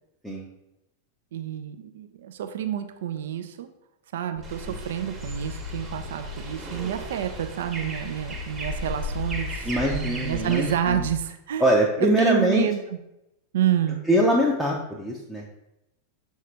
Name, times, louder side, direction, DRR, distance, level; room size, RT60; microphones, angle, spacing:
voice 1, 1.3-3.7 4.1-13.0 13.5-14.1, right 10 dB, 60° right, 8 dB, 0.3 m, -29 dB
Purr, 4.4-11.3, left 5 dB, 60° left, 0.6 m, -40 dB
sound 1, 4.4-10.7, right 1 dB, 15° right, 0.9 m, -36 dB
voice 2, 9.6-11.1 11.6-12.7 14.1-15.4, equal, ahead, -4 dB, 0.5 m, -23 dB
5.6 x 2.7 x 3.3 m, 0.88 s
figure-of-eight pair, 90°, 0 cm